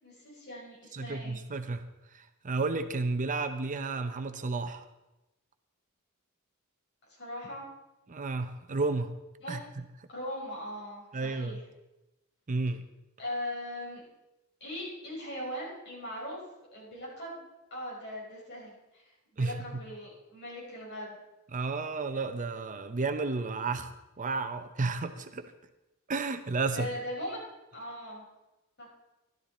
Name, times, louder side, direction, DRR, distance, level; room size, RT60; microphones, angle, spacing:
voice 1, 0.0-1.4 7.1-7.7 9.4-9.6 10.1-11.6 13.2-14.0 14.6-16.4 16.7-17.4 17.7-19.0 19.4-21.2 26.7-27.4 27.7-28.2 28.8-28.9, left 1 dB, 50° left, -5 dB, 5.8 m, -39 dB
voice 2, 0.9-1.9 2.1-4.8 8.1-9.1 9.5-9.6 11.1-11.6 12.5-12.8 19.4-19.5 21.5-25.5 26.1-26.9, right 3 dB, 35° right, 9 dB, 0.6 m, -32 dB
13.0 x 12.0 x 4.2 m, 0.98 s
head